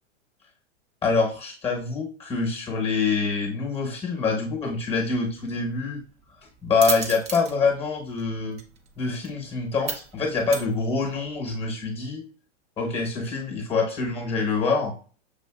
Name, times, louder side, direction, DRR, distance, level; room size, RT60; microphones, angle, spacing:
voice 1, 1.0-6.0 6.6-8.6 9.0-12.2 12.8-14.9, left 4 dB, 15° left, 2 dB, 0.9 m, -25 dB
sound 1, 4.5-11.4, right 5 dB, 20° right, 0.4 m, -37 dB
6.6 x 2.5 x 2.3 m, 0.40 s
hypercardioid pair, 120°, 35 cm